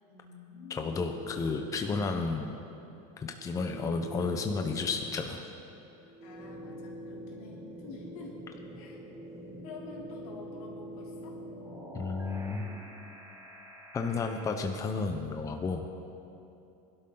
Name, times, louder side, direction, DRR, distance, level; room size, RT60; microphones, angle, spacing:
voice 1, 0.1-0.9 6.2-8.4 8.8-9.0 9.6-11.4, left 3 dB, 80° left, -3 dB, 3.6 m, -48 dB
voice 2, 0.7-2.6 3.2-5.5 11.9-12.7 13.9-15.9, left 4 dB, 20° left, 4 dB, 0.7 m, -32 dB
sound 1, 0.9-2.7 3.2-14.6, equal, 15° right, 1.6 m, -45 dB
21.0 x 12.0 x 3.9 m, 2.8 s
supercardioid pair, 140°, 18 cm